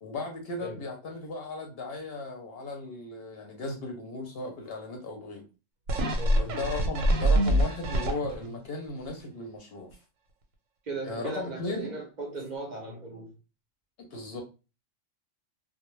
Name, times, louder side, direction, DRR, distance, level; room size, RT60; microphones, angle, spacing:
voice 1, 0.0-5.4 6.4-9.9 11.0-11.9 14.0-14.4, left 2 dB, 60° left, 0.7 m, -36 dB
sound 1, 5.9-8.6 9.1-9.2, right 1 dB, 90° right, 1.0 m, -25 dB
voice 2, 6.1-6.6 10.8-13.3, right 2 dB, 45° right, 0.6 m, -37 dB
2.2 x 2.1 x 3.0 m
omnidirectional pair, 1.3 m